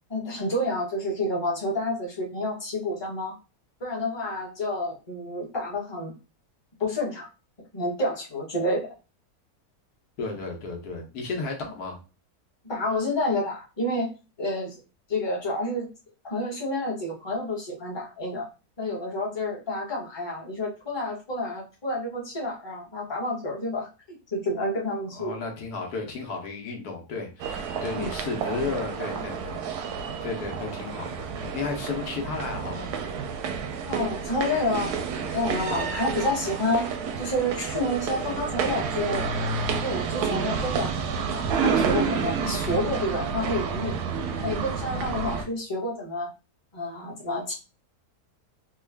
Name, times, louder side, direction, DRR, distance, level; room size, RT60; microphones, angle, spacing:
voice 1, 0.1-3.4 3.8-6.1 6.8-7.3 7.7-8.9 12.6-14.1 14.4-14.8 15.1-15.9 16.2-18.5 18.8-23.9 24.3-25.3 28.0-28.1 33.9-34.9 35.2-36.9 37.2-39.4 39.8-41.0 41.3-44.0 44.4-46.3 46.7-47.5, left 1 dB, 20° left, -2 dB, 0.9 m, -29 dB
voice 2, 10.2-12.0 25.1-29.9 30.2-32.9, left 4 dB, 80° left, 1 dB, 1.4 m, -33 dB
sound 1, 27.4-45.4, right 5 dB, 85° right, 1.1 m, -30 dB
3.6 x 2.3 x 3.3 m, 0.31 s
omnidirectional pair, 1.6 m